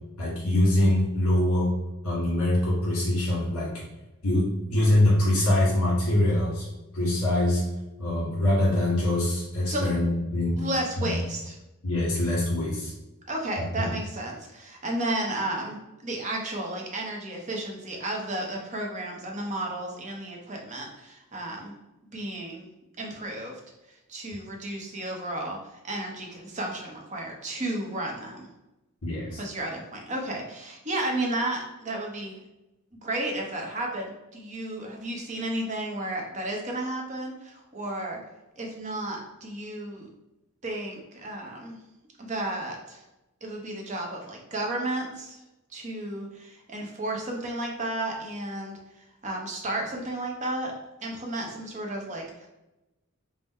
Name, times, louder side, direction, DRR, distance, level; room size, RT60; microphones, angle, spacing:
voice 1, 0.2-1.7 2.0-3.9 4.2-6.6 6.9-7.6 8.0-10.6 11.0-11.1 11.8-12.9 13.6-13.9 29.0-29.4, left 1 dB, 80° left, -7 dB, 1.5 m, -24 dB
voice 2, 10.6-11.5 13.3-21.7 22.1-22.7 23.0-23.6 23.9-28.5 29.4-32.4 32.9-38.2 38.6-40.1 40.6-41.7 42.2-43.0 43.4-45.4 45.7-48.8 49.2-50.7 51.0-52.5, right 1 dB, 35° right, 0 dB, 0.7 m, -33 dB
3.5 x 2.1 x 4.2 m, 0.97 s
head